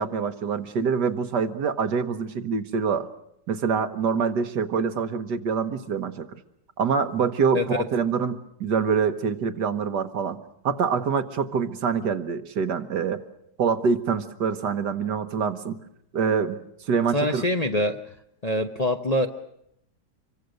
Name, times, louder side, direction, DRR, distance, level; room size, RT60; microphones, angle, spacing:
voice 1, 0.0-3.1 3.5-6.4 6.8-10.4 10.6-13.2 13.6-15.8 16.1-16.6 16.9-17.4, right 6 dB, 70° right, 9 dB, 1.8 m, -25 dB
voice 2, 17.1-18.0 18.4-19.3, left 1 dB, 30° left, 5 dB, 0.8 m, -24 dB
26.5 x 24.0 x 6.6 m, 0.75 s
omnidirectional pair, 1.9 m